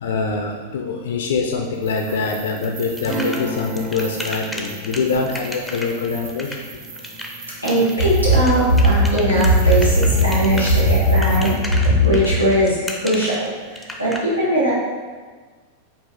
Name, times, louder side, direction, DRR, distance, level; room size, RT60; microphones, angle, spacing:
voice 1, 0.0-6.6, left 4 dB, 60° left, 2 dB, 0.4 m, -24 dB
sound 1, 1.7-11.6, right 4 dB, 55° right, 0.8 m, -39 dB
sound 2, 2.6-14.2, left 1 dB, ahead, 0.5 m, -33 dB
Acoustic guitar / Strum, 3.0-9.2 9.6-9.7, right 1 dB, 20° right, 1.0 m, -34 dB
voice 2, 7.6-13.5 14.0-14.7, equal, 85° right, -8 dB, 1.4 m, -17 dB
5.2 x 2.4 x 3.6 m, 1.5 s
figure-of-eight pair, 90°, 0 cm